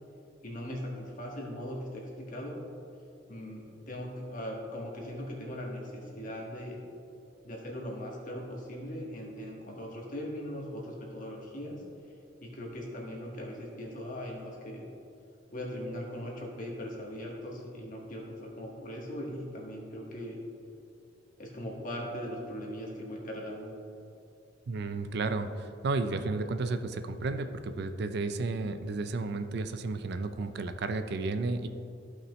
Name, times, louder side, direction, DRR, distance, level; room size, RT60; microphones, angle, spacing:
voice 1, 0.4-2.6 3.3-6.8 7.4-11.8 12.4-14.9 15.5-20.4 21.4-23.7, equal, 45° left, -2 dB, 1.6 m, -39 dB
voice 2, 24.7-31.7, right 3 dB, 55° right, 9 dB, 0.4 m, -32 dB
14.0 x 5.8 x 3.1 m, 2.7 s
head